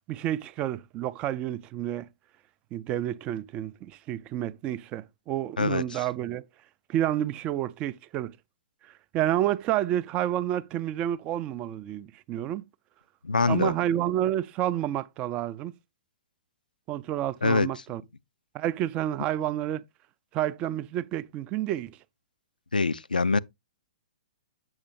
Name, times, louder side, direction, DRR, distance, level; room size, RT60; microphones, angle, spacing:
voice 1, 0.1-2.1 2.7-6.5 6.9-8.4 9.1-12.6 13.5-15.7 16.9-18.0 18.5-19.8 20.3-22.0, right 12 dB, 25° right, 0.3 m, -29 dB
voice 2, 5.6-6.1 13.2-13.7 17.4-17.7 22.7-23.4, left 3 dB, 75° left, 0.3 m, -24 dB
7.9 x 6.6 x 2.5 m
figure-of-eight pair, 115°, 5 cm